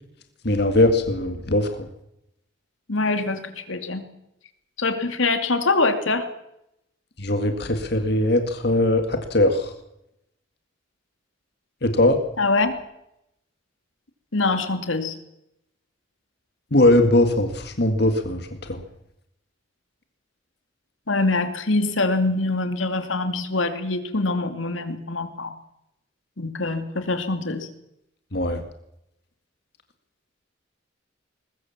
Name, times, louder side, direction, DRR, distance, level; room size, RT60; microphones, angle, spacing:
voice 1, 0.5-1.7 7.2-9.0 9.3-9.6 11.8-12.2 16.7-17.5 17.8-18.4 28.3-28.6, left 1 dB, 55° left, 6 dB, 2.0 m, -19 dB
voice 2, 2.9-4.0 4.8-6.3 12.4-12.8 14.3-15.1 21.1-25.6 26.4-27.7, left 3 dB, 80° left, 8 dB, 2.5 m, -24 dB
21.0 x 21.0 x 7.3 m, 0.82 s
head